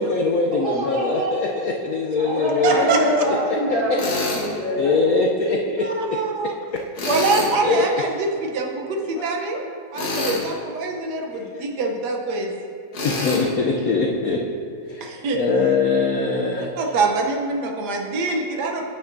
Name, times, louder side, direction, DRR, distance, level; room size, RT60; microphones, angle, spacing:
voice 1, 0.0-2.9 3.7-3.8 4.8-5.9 7.0-7.1 7.6-7.9 11.3-11.6 13.0-14.4 14.9-15.1 15.3-16.7, left 3 dB, 80° left, 0 dB, 0.7 m, -22 dB
voice 2, 0.6-1.6 2.2-4.9, equal, 75° right, -5 dB, 2.7 m, -25 dB
voice 3, 2.6-3.2 5.8-6.5 7.1-9.6 9.9-12.5 15.0-15.4 16.7-18.8, right 3 dB, 60° right, 1 dB, 1.3 m, -24 dB
Tools, 4.0-4.5 7.0-7.5 9.9-10.5 12.9-13.4, left 2 dB, 50° left, 1.6 m, -26 dB
9.5 x 8.7 x 2.6 m, 2.4 s
omnidirectional pair, 2.2 m